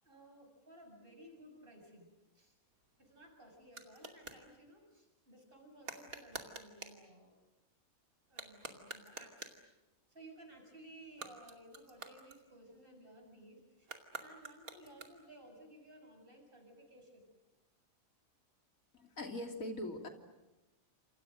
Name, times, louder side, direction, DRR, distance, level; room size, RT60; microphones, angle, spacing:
voice 1, 0.0-2.1 2.3-2.5 3.0-7.4 8.3-9.5 10.1-13.9 14.2-17.3, right 1 dB, 40° right, 3 dB, 7.5 m, -57 dB
sound 1, 2.7-4.5 5.8-7.0 8.2-9.7 11.0-12.9 13.8-15.4, right 3 dB, 85° right, 3.1 m, -49 dB
voice 2, 18.9-20.1, left 1 dB, 75° left, 4 dB, 3.3 m, -41 dB
29.5 x 27.5 x 6.4 m, 1.0 s
omnidirectional pair, 1.4 m